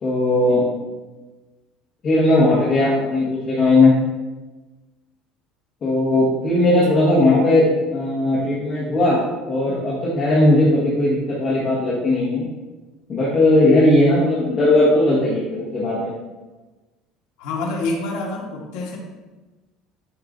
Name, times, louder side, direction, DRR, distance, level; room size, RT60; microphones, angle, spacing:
voice 1, 0.0-0.7 2.0-3.9 5.8-9.2 9.5-12.4 13.1-16.1, left 2 dB, 30° left, -9 dB, 1.5 m, -17 dB
voice 2, 17.4-19.0, left 2 dB, 75° left, -2 dB, 1.3 m, -27 dB
9.6 x 4.5 x 2.6 m, 1.2 s
cardioid pair, 175°, 0 cm